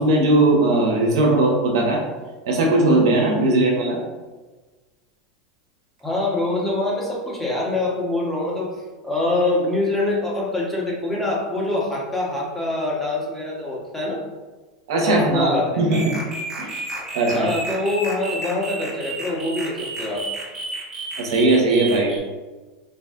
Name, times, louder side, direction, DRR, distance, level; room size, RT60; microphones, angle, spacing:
voice 1, 0.0-2.0 2.5-4.0 14.9-15.5 15.8-16.0 16.6-16.9 17.1-17.5 21.2-22.1, right 2 dB, 75° right, -1 dB, 1.0 m, -18 dB
voice 2, 6.0-8.7 9.0-14.2 15.0-15.8 17.3-20.2, left 2 dB, 5° left, -5 dB, 1.3 m, -24 dB
sound 1, 15.9-22.2, right 2 dB, 25° right, 1.3 m, -32 dB
4.1 x 2.6 x 3.7 m, 1.2 s
hypercardioid pair, 105°, 3 cm